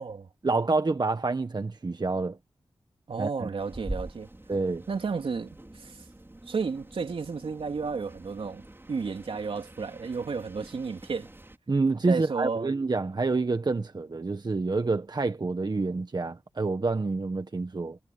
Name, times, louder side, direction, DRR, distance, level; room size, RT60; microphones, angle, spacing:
voice 1, 0.4-2.4 3.2-3.5 4.5-4.8 11.7-18.0, right 3 dB, 50° right, 1.5 m, -28 dB
voice 2, 3.1-4.3 4.9-6.0 6.5-8.6 8.9-11.3 12.1-12.7, right 5 dB, 75° right, 3.7 m, -32 dB
sound 1, 3.6-11.6, right 1 dB, 25° right, 5.4 m, -44 dB
cardioid pair, 45°, 9 cm